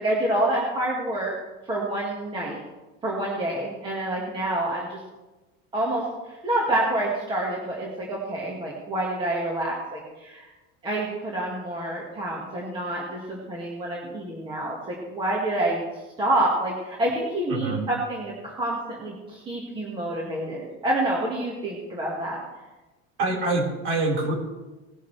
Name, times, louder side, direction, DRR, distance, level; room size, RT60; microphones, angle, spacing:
voice 1, 0.0-1.3 1.7-2.6 3.0-5.0 5.7-10.5 10.8-22.4, right 1 dB, 15° right, -3 dB, 1.8 m, -28 dB
voice 2, 23.2-24.3, right 2 dB, 45° right, -2 dB, 4.6 m, -25 dB
19.0 x 11.0 x 3.3 m, 1.1 s
cardioid pair, 170°, 29 cm